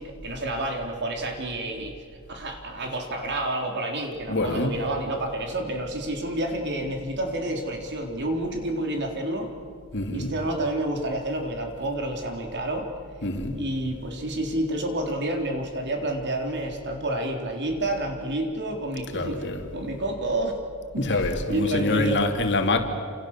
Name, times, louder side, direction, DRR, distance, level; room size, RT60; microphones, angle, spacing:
voice 1, 0.0-1.9 2.3-9.5 10.1-12.9 13.5-20.6 20.9-22.2, right 1 dB, 50° right, 3.8 m, -29 dB
voice 2, 4.3-4.8 9.9-10.3 13.2-13.6 19.1-19.6 21.0-22.8, left 2 dB, 55° left, 2.9 m, -25 dB
29.0 x 27.5 x 7.5 m
head